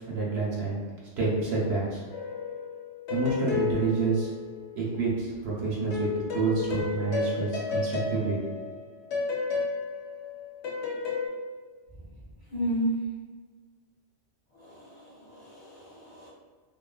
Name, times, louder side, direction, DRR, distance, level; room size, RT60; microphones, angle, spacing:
voice 1, 0.1-0.8 1.2-2.0 3.1-4.3 4.7-8.4, right 4 dB, 65° right, -5 dB, 0.9 m, -28 dB
sound 1, 2.1-5.0 5.9-11.3, left 5 dB, 90° left, 0.9 m, -32 dB
voice 2, 12.5-13.0 14.5-16.3, right 1 dB, 40° left, -9 dB, 0.7 m, -32 dB
3.0 x 2.1 x 2.2 m, 1.4 s
omnidirectional pair, 1.2 m